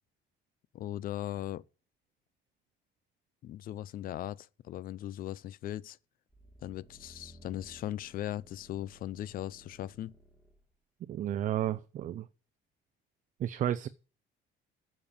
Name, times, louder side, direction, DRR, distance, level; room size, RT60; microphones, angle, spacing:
voice 1, 0.7-1.6 3.4-6.0 6.6-10.2, left 13 dB, 50° left, 0.5 m, -38 dB
sound 1, 6.3-10.7 11.2-11.3, right 1 dB, ahead, 1.7 m, -57 dB
voice 2, 11.0-12.3 13.4-13.9, right 11 dB, 45° right, 0.5 m, -32 dB
9.0 x 7.4 x 8.7 m
cardioid pair, 150°, 19 cm